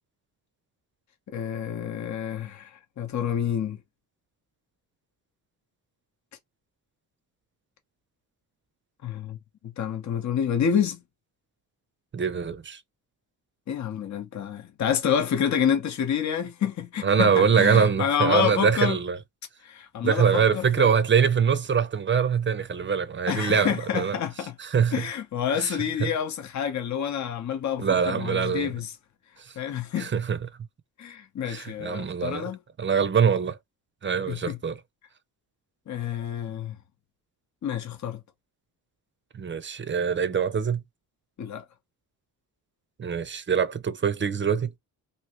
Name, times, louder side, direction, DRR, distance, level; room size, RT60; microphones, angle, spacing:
voice 1, 1.3-3.8 9.0-9.4 9.8-11.0 13.7-19.0 19.6-20.9 23.3-24.5 24.9-28.9 29.6-30.1 31.0-32.6 34.3-34.6 35.9-36.8 37.6-38.2 41.4-41.6, left 8 dB, 50° left, 0.8 m, -28 dB
voice 2, 12.1-12.8 17.0-19.2 20.0-24.2 24.6-25.0 25.5-26.1 27.8-28.7 29.4-29.5 30.0-30.4 31.5-32.4 32.8-33.6 34.0-34.8 39.3-40.8 43.0-44.7, right 6 dB, 30° right, 0.5 m, -24 dB
3.0 x 2.7 x 2.9 m
cardioid pair, 75°, 38 cm